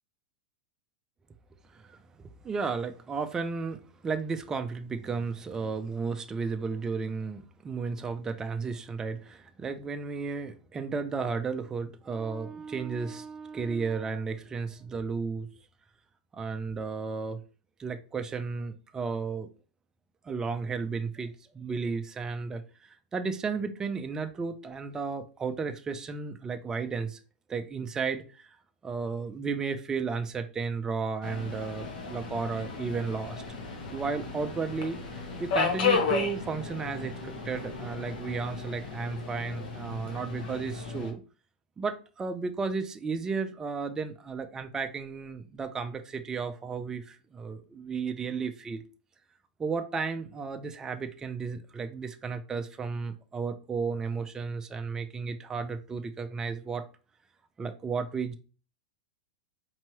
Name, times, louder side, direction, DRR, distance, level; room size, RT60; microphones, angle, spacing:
voice 1, 1.7-15.5 16.3-17.4 17.8-19.5 20.2-22.6 22.9-27.2 27.5-28.5 28.8-33.4 33.9-35.0 35.4-41.2 41.8-48.8 49.6-56.8 57.6-58.3, right 5 dB, 15° right, 0.4 m, -33 dB
Subway metro underground, 31.2-41.1, left 5 dB, 75° left, 1.2 m, -33 dB
4.5 x 3.0 x 2.9 m
supercardioid pair, 145°, 5 cm